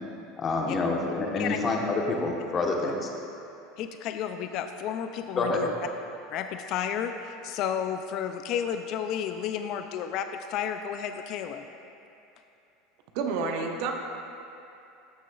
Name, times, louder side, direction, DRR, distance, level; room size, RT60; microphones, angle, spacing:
voice 1, 0.4-3.1 5.4-5.6, left 3 dB, 35° left, 0 dB, 1.1 m, -27 dB
voice 2, 3.8-5.7 6.3-11.6, left 8 dB, 55° left, 7 dB, 0.3 m, -32 dB
voice 3, 13.1-13.9, right 4 dB, 65° right, 3 dB, 0.8 m, -29 dB
13.5 x 6.1 x 2.3 m, 2.8 s
hypercardioid pair, 100°, 0 cm